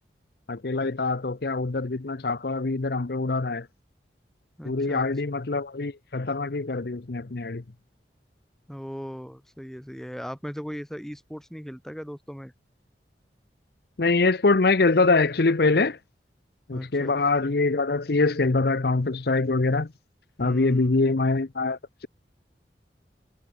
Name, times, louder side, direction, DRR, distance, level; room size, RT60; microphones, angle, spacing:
voice 1, 0.5-3.7 4.6-7.6 14.0-16.0 16.7-19.9 20.4-22.1, left 3 dB, 60° left, 0.8 m, -24 dB
voice 2, 4.6-5.1 8.7-12.5 16.7-17.2 20.4-21.0, equal, ahead, 3.9 m, -38 dB
head